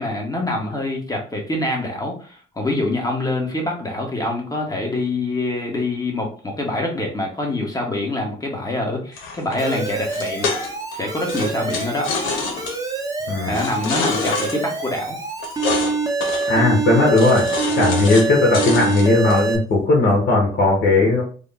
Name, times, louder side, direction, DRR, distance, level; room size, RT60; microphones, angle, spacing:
voice 1, 0.0-10.5 10.9-12.2 13.4-15.2, left 2 dB, 20° left, 0 dB, 1.3 m, -25 dB
sound 1, 9.2-10.9 11.3-12.7 13.5-14.6 15.4-15.9 16.2-16.5 17.1-18.3 18.5-19.4, left 4 dB, 90° left, 0.8 m, -26 dB
Alarm, 9.6-19.6, right 4 dB, 15° right, 0.8 m, -25 dB
voice 2, 16.5-17.5 17.8-21.2, left 2 dB, 60° left, -3 dB, 1.3 m, -17 dB
3.6 x 2.3 x 3.7 m, 0.41 s
cardioid pair, 90°, 20 cm